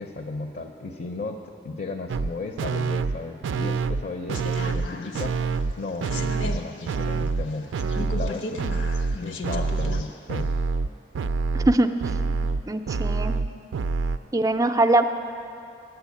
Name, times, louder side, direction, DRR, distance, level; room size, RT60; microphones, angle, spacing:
voice 1, 0.0-1.4 1.6-5.4 5.8-10.5, left 3 dB, 45° left, 5 dB, 0.6 m, -35 dB
sound 1, 2.1-2.3 2.6-3.2 3.4-4.0 4.3-4.9 5.1-5.7 6.0-6.6 6.9-7.5 7.7-8.3 8.6-9.2 9.4-10.0 10.3-14.2, right 4 dB, 80° right, 0.4 m, -26 dB
sound 2, 4.3-10.1 10.4-10.5, left 3 dB, 85° left, 0.9 m, -36 dB
voice 2, 11.5-11.9 12.7-13.4 14.3-15.1, right 2 dB, 20° right, 8 dB, 0.4 m, -21 dB
10.5 x 8.9 x 8.4 m, 2.6 s
head